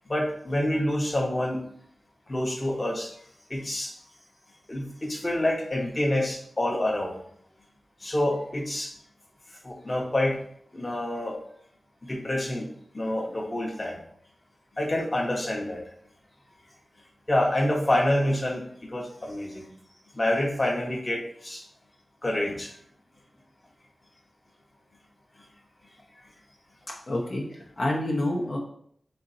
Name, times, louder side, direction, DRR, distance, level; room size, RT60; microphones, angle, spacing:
voice 1, 0.1-1.6 2.3-3.1 3.5-3.9 4.7-7.1 8.0-8.9 9.6-10.4 10.7-11.4 12.0-12.7 12.9-14.0 14.8-15.8 17.3-18.6 18.9-19.7 20.2-21.6 22.2-22.7, left 1 dB, 30° left, -1 dB, 1.0 m, -27 dB
voice 2, 27.1-28.6, left 1 dB, 55° left, -3 dB, 0.8 m, -28 dB
4.4 x 2.6 x 4.1 m, 0.65 s
wide cardioid pair, 80°, 0 cm